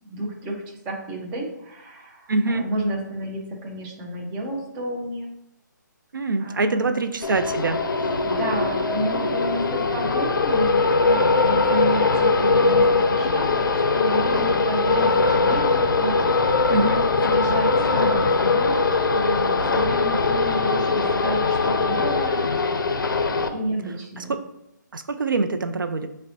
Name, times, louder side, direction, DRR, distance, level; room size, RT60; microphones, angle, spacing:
voice 1, 0.0-5.3 6.4-7.0 8.2-22.5 23.5-24.4, right 1 dB, 10° right, 0 dB, 0.4 m, -31 dB
voice 2, 2.3-2.6 6.1-7.8 16.7-17.0 24.3-24.4 24.9-26.1, right 3 dB, 90° right, 9 dB, 0.4 m, -24 dB
sound 1, 7.2-23.5, left 3 dB, 85° left, 0.4 m, -21 dB
5.2 x 2.1 x 2.7 m, 0.82 s
figure-of-eight pair, 155°, 11 cm